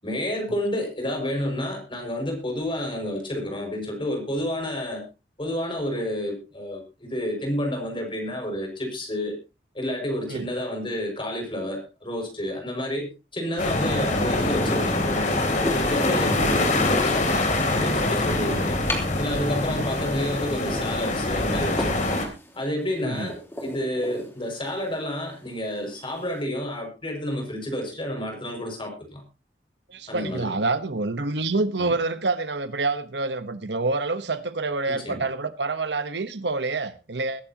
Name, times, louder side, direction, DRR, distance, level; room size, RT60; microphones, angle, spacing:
voice 1, 0.0-5.0 5.4-9.4 9.7-15.4 15.7-18.8 19.2-22.1 22.5-23.4 23.6-29.2 30.1-30.5 31.8-31.9 34.9-35.2, left 1 dB, 30° left, 6.1 m, -30 dB
sound 1, 13.6-22.3, left 2 dB, 45° left, 3.3 m, -24 dB
sound 2, 14.9-26.4, left 1 dB, 15° left, 3.7 m, -38 dB
voice 2, 23.0-23.3 29.9-37.4, right 3 dB, 80° right, 1.2 m, -27 dB
22.5 x 11.5 x 3.0 m
head